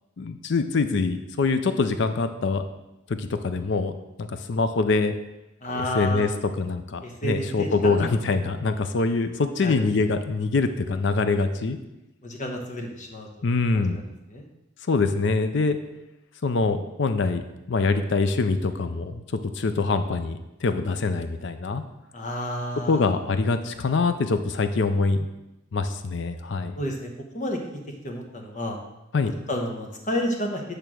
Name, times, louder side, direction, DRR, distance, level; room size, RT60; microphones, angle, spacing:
voice 1, 0.2-2.6 3.1-3.9 4.2-5.1 5.7-6.3 6.6-11.8 13.4-14.0 14.9-15.8 16.4-19.2 19.5-21.8 22.9-25.3 25.7-26.7 29.1-29.3, left 3 dB, 60° left, 9 dB, 0.5 m, -24 dB
voice 2, 5.6-6.3 7.0-8.1 9.6-9.8 12.2-13.5 13.7-14.0 14.3-14.5 22.1-23.1 26.7-28.8 29.5-30.6, left 1 dB, 40° left, 2 dB, 1.1 m, -31 dB
8.8 x 3.4 x 6.2 m, 0.94 s
head